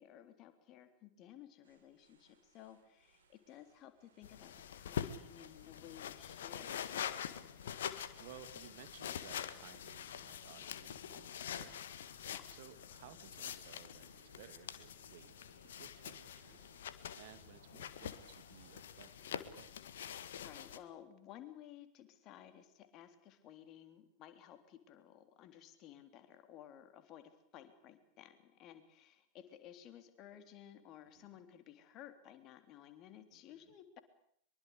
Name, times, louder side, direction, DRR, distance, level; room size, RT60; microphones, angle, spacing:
voice 1, 0.0-7.3 12.3-12.6 20.3-34.0, left 10 dB, 35° left, 9 dB, 3.4 m, -56 dB
sound 1, 1.6-19.3, right 5 dB, 65° right, 4.8 m, -70 dB
sound 2, 4.2-20.8, left 9 dB, 60° left, 1.8 m, -45 dB
voice 2, 7.9-11.8 12.5-19.8 31.2-31.4 33.3-33.7, right 11 dB, 50° right, 12 dB, 2.1 m, -59 dB
24.5 x 23.5 x 8.4 m, 0.68 s
figure-of-eight pair, 90°, 0 cm